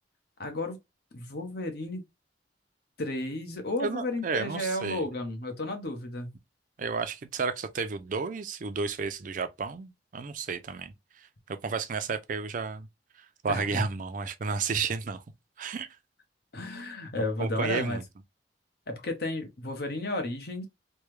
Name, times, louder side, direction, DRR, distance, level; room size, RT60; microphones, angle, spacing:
voice 1, 0.4-0.8 1.1-2.0 3.0-6.3 13.5-13.8 16.5-18.0 18.9-20.7, left 1 dB, 60° left, 1.0 m, -33 dB
voice 2, 3.8-5.0 6.8-12.9 13.2-15.2 15.6-15.9 17.4-18.0, right 5 dB, 45° right, 0.4 m, -32 dB
3.3 x 2.2 x 3.1 m
head